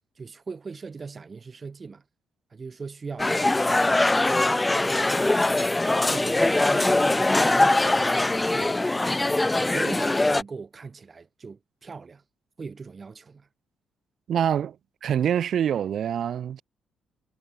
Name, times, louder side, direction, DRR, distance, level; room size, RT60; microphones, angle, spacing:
voice 1, 0.2-2.0 2.5-5.4 6.0-8.9 9.4-12.2 12.6-13.5, right 4 dB, 35° right, 5.3 m, -40 dB
sound 1, 3.2-10.4, left 2 dB, 15° left, 0.5 m, -22 dB
voice 2, 14.3-14.8 15.0-16.6, right 9 dB, 65° right, 2.3 m, -25 dB
cardioid pair, 90°, 0 cm